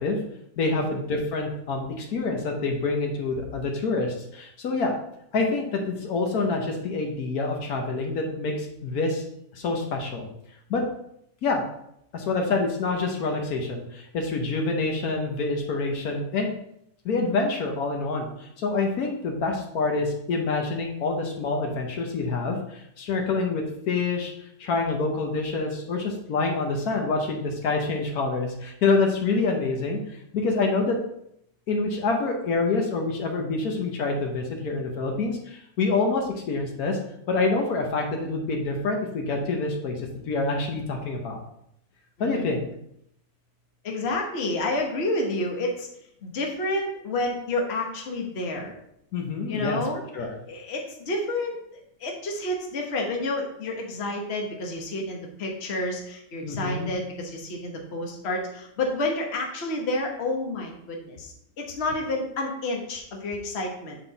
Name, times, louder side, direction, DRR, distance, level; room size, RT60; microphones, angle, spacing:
voice 1, 0.6-4.9 5.3-9.2 9.5-10.3 10.7-10.8 11.4-11.6 12.1-16.5 17.0-24.3 24.6-31.0 31.7-37.0 37.3-41.4 42.2-42.7 49.1-49.8 50.1-50.4 56.4-56.9, left 3 dB, 75° left, 2 dB, 1.4 m, -27 dB
voice 2, 42.2-42.5 43.8-45.9 46.2-48.7 49.5-50.0 50.5-51.5 52.0-64.0, left 2 dB, 45° left, 1 dB, 1.2 m, -29 dB
8.0 x 3.8 x 3.9 m, 0.75 s
omnidirectional pair, 1.6 m